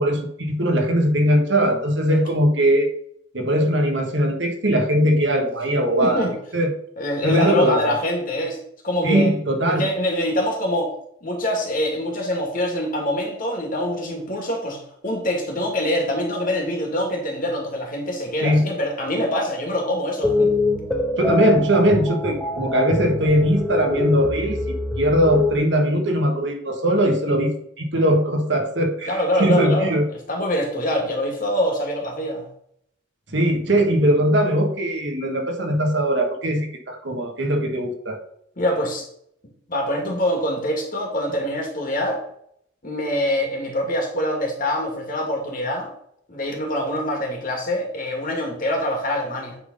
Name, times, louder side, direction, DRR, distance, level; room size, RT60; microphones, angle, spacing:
voice 1, 0.0-2.9 3.3-6.7 7.2-7.8 9.0-9.8 18.4-18.6 21.2-24.6 25.0-30.0 33.3-38.2, equal, 65° right, 3 dB, 1.5 m, -20 dB
voice 2, 6.0-6.3 7.0-8.6 8.8-9.3 9.8-10.9 11.2-20.5 29.1-30.0 30.3-32.5 38.6-39.1 39.7-42.2 42.8-45.9 46.3-49.6, equal, 45° left, 1 dB, 2.1 m, -24 dB
sound 1, 20.2-25.6, left 3 dB, 5° left, 1.1 m, -24 dB
9.1 x 3.9 x 5.3 m, 0.70 s
head